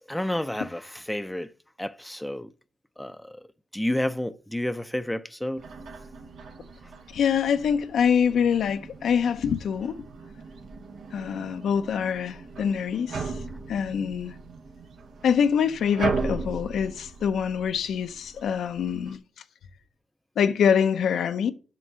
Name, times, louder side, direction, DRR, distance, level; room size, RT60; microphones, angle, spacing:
voice 1, 0.1-1.5 1.8-2.5 3.0-3.4 3.7-5.6, left 1 dB, 5° left, 0.5 m, -30 dB
sound 1, 5.6-19.2, right 4 dB, 75° right, 1.3 m, -37 dB
voice 2, 7.1-10.0 11.1-13.3 13.7-14.3 15.2-19.2 20.4-21.5, left 7 dB, 80° left, 0.6 m, -25 dB
7.7 x 6.0 x 6.4 m
cardioid pair, 75°, 0 cm